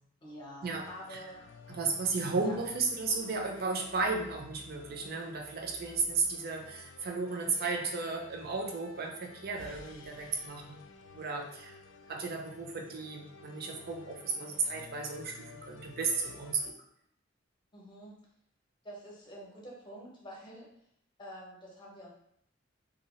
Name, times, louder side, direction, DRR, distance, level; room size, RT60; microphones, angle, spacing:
voice 1, 0.2-1.5 2.4-2.5 17.7-18.2 18.8-20.7 21.2-22.1, equal, 25° left, -3 dB, 0.7 m, -47 dB
sound 1, 0.6-16.7, left 4 dB, 80° left, 0.3 m, -53 dB
voice 2, 1.7-10.8 11.1-11.8 12.1-16.8, right 4 dB, 50° right, 2 dB, 0.5 m, -34 dB
2.7 x 2.3 x 2.9 m, 0.70 s
head